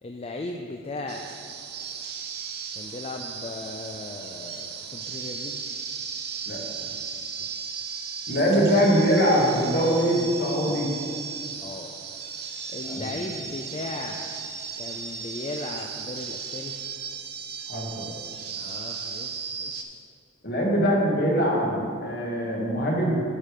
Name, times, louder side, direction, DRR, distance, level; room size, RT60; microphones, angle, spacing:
voice 1, 0.0-1.3 1.7-1.8 2.7-5.8 7.4-7.7 11.6-12.0 12.7-14.3 14.8-16.7 18.6-20.0, left 2 dB, 30° left, 2 dB, 0.4 m, -37 dB
sound 1, 1.1-19.8, right 6 dB, 55° right, 0.7 m, -36 dB
voice 2, 8.3-10.9 12.8-13.1 17.7-18.0 20.4-23.2, equal, 55° left, -2 dB, 1.5 m, -23 dB
9.9 x 4.9 x 5.1 m, 2.3 s
head